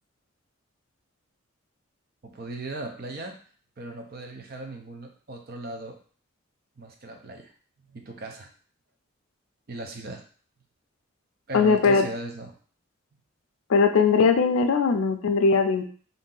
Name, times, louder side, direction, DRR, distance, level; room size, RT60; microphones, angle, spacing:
voice 1, 2.2-3.3 3.8-6.0 6.8-7.5 7.9-8.5 9.7-10.2 11.5-12.5, right 2 dB, 45° right, 3 dB, 0.5 m, -37 dB
voice 2, 11.5-12.0 13.7-15.8, left 5 dB, 85° left, 6 dB, 0.4 m, -20 dB
2.7 x 2.6 x 3.8 m, 0.43 s
head